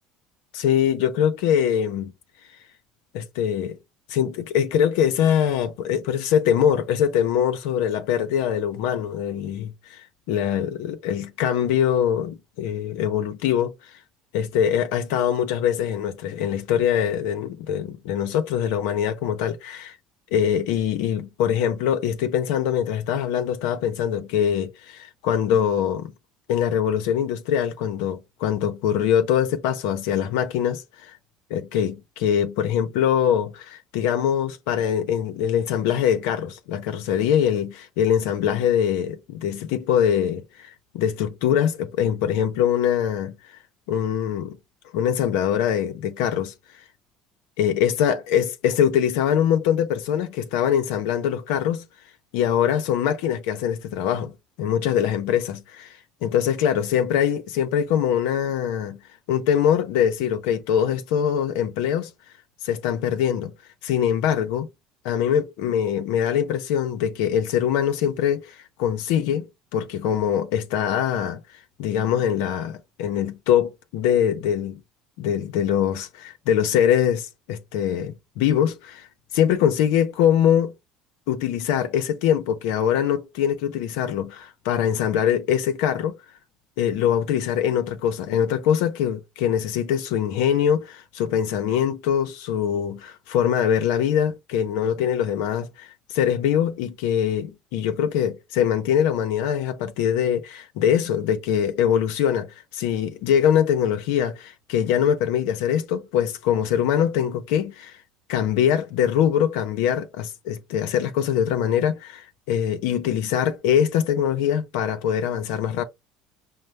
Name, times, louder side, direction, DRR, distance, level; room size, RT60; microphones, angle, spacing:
voice 1, 0.5-2.1 3.1-3.8 4.1-10.0 10.3-13.9 14.3-19.9 20.3-26.1 26.5-31.1 31.5-43.6 43.9-44.6 44.9-46.5 47.6-51.8 52.3-54.3 54.6-59.0 59.3-62.1 62.6-63.5 63.8-64.7 65.0-69.5 69.7-71.4 71.8-74.8 75.2-79.1 79.3-80.7 81.3-86.2 86.8-102.5 102.7-108.0 108.3-115.8, left 9 dB, 80° left, 0.6 m, -23 dB
5.2 x 2.1 x 3.2 m
supercardioid pair, 100°, 0 cm